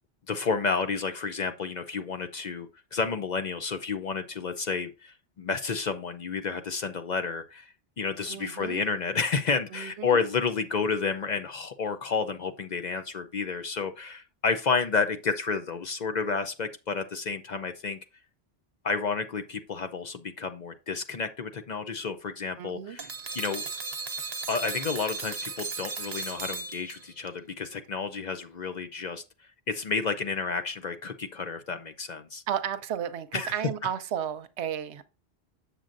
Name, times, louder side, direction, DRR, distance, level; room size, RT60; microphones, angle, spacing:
voice 1, 0.3-18.0 18.8-23.1 23.3-23.6 24.5-29.2 29.7-32.4 33.3-33.5, left 5 dB, 50° left, 0.6 m, -30 dB
voice 2, 8.3-8.9 9.7-10.2 22.6-23.0 32.5-35.0, right 9 dB, 85° right, 0.9 m, -33 dB
sound 1, 23.0-27.3, right 4 dB, 40° right, 0.8 m, -36 dB
7.5 x 6.7 x 2.5 m
omnidirectional pair, 1.1 m